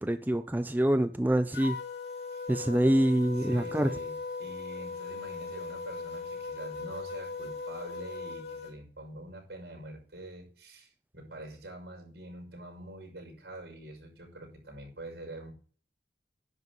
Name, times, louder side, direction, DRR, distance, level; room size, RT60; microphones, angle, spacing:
voice 1, 0.0-1.8 2.5-3.9, right 1 dB, 10° right, 0.4 m, -26 dB
sound 1, 1.5-8.7, left 4 dB, 70° left, 2.5 m, -39 dB
voice 2, 3.4-15.5, right 1 dB, 75° right, 6.1 m, -45 dB
11.0 x 5.4 x 7.9 m
head